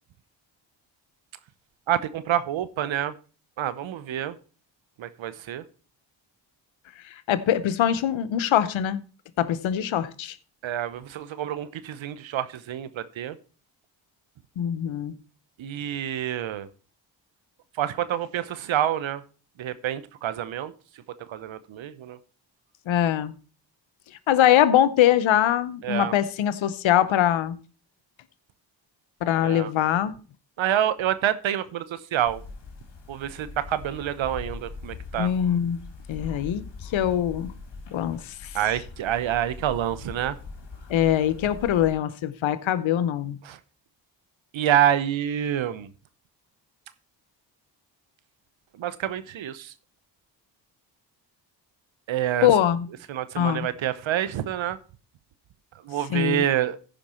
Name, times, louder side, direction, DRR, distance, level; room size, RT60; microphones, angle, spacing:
voice 1, 1.9-3.1 3.6-4.4 5.0-5.6 10.6-13.4 15.6-16.7 17.8-19.2 19.6-20.7 21.3-22.2 25.8-26.1 29.4-29.7 30.6-32.4 33.1-35.3 38.5-40.4 43.4-43.6 44.5-45.9 48.8-49.7 52.1-52.5 53.1-54.8 55.8-56.8, right 11 dB, 80° right, 0.9 m, -27 dB
voice 2, 7.3-9.0 9.4-10.4 14.6-15.1 22.9-23.3 24.3-27.6 29.2-30.1 35.2-35.8 36.1-37.5 37.9-38.5 40.9-43.4 52.4-52.9 53.4-53.7 56.1-56.4, left 11 dB, 80° left, 0.8 m, -23 dB
sound 1, 32.2-41.9, left 4 dB, 65° left, 2.3 m, -41 dB
15.0 x 5.3 x 4.3 m
supercardioid pair, 45°, 46 cm